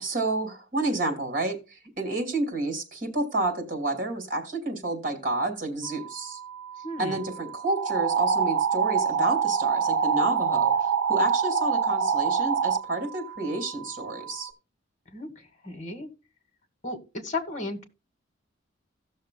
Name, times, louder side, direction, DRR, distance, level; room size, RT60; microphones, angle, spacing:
voice 1, 0.0-6.4 7.0-10.7 11.1-14.5, right 2 dB, 45° right, 2.7 m, -29 dB
sound 1, 5.8-14.5, right 8 dB, 5° left, 1.0 m, -43 dB
voice 2, 6.8-7.2 15.1-16.1 16.8-17.8, left 2 dB, 40° left, 2.0 m, -34 dB
sound 2, 7.8-12.8, right 6 dB, 80° right, 0.6 m, -24 dB
16.5 x 6.5 x 2.3 m
head